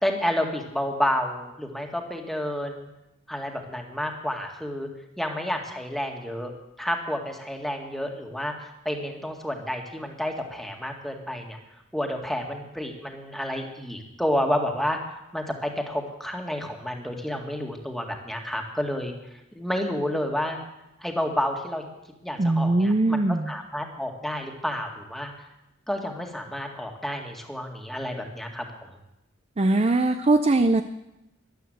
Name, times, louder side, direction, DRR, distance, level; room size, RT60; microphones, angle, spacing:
voice 1, 0.0-2.9 3.3-4.9 5.2-6.5 6.8-11.6 11.9-19.1 19.5-20.6 21.0-21.9 22.2-23.2 23.5-25.3 25.9-28.8, equal, ahead, 2 dB, 1.9 m, -30 dB
voice 2, 22.4-23.5 29.6-30.8, right 2 dB, 30° right, 9 dB, 0.5 m, -21 dB
14.0 x 11.5 x 7.9 m, 0.91 s
head